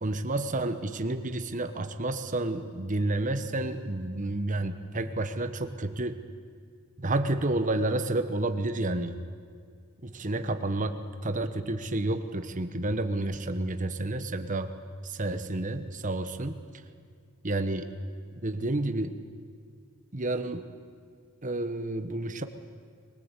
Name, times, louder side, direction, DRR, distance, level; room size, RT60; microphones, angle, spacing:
voice 1, 0.0-6.2 7.0-9.2 10.0-14.7 15.0-16.6 17.4-17.9 18.4-19.2 20.1-20.7 21.4-22.4, right 2 dB, 35° right, 8 dB, 1.2 m, -30 dB
22.5 x 21.0 x 8.3 m, 2.1 s
head